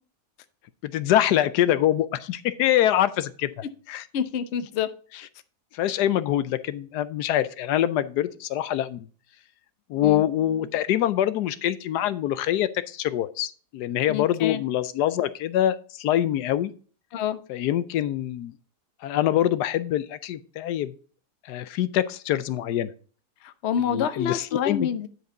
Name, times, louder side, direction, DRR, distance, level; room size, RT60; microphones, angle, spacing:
voice 1, 0.8-3.5 3.9-4.0 5.7-9.1 9.9-16.7 17.5-18.5 19.0-20.9 21.5-22.9 23.9-24.9, left 12 dB, 85° left, 14 dB, 1.2 m, -24 dB
voice 2, 4.1-4.9 10.0-10.2 14.1-14.6 17.1-17.4 23.4-25.1, left 8 dB, 55° left, 11 dB, 0.9 m, -27 dB
9.6 x 5.2 x 3.8 m, 0.40 s
omnidirectional pair, 1.7 m